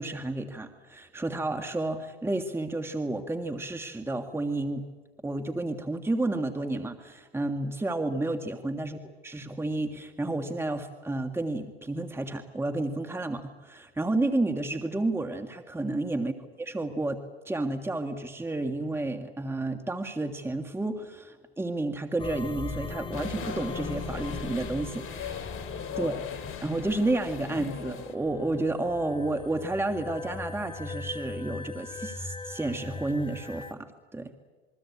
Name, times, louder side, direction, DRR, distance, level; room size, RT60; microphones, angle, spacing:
voice 1, 0.0-4.9 5.2-9.0 9.2-16.3 16.7-17.2 17.5-25.5 26.0-26.3 26.6-34.3, right 2 dB, 10° right, 6 dB, 1.8 m, -31 dB
sound 1, 22.2-33.7, left 4 dB, 15° left, 1.2 m, -40 dB
sound 2, 23.1-28.1, left 7 dB, 45° left, 2.8 m, -39 dB
27.5 x 22.5 x 8.5 m, 1.3 s
hypercardioid pair, 85°, 30 cm